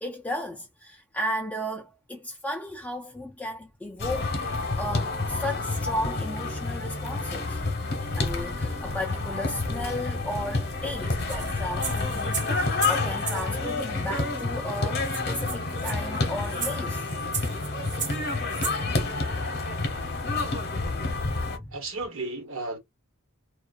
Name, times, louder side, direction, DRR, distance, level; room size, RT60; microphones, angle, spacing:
voice 1, 0.0-7.6 8.1-12.4 12.8-17.1 21.6-21.8, left 1 dB, 5° left, 0.3 m, -34 dB
sound 1, 4.0-21.6, left 3 dB, 50° left, 0.8 m, -29 dB
sound 2, 11.3-13.5 14.4-14.5 14.7-14.8 15.0-18.8, right 6 dB, 35° right, 0.6 m, -35 dB
voice 2, 21.7-22.8, right 2 dB, 65° right, 1.1 m, -33 dB
2.3 x 2.3 x 2.3 m
head